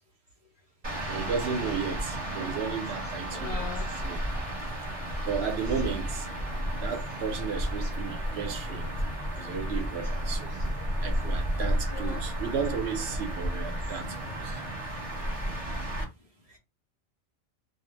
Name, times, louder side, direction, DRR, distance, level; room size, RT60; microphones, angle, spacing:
sound 1, 0.8-16.0, equal, 30° right, 0.8 m, -32 dB
voice 1, 1.0-3.6 4.0-4.2 5.2-6.3 6.7-8.9 9.4-10.5 11.0-14.6, right 6 dB, 65° right, 0.8 m, -34 dB
voice 2, 3.3-3.9 11.9-12.2 12.6-12.8 16.5-16.6, left 5 dB, 65° left, 0.4 m, -39 dB
2.2 x 2.0 x 3.0 m
omnidirectional pair, 1.3 m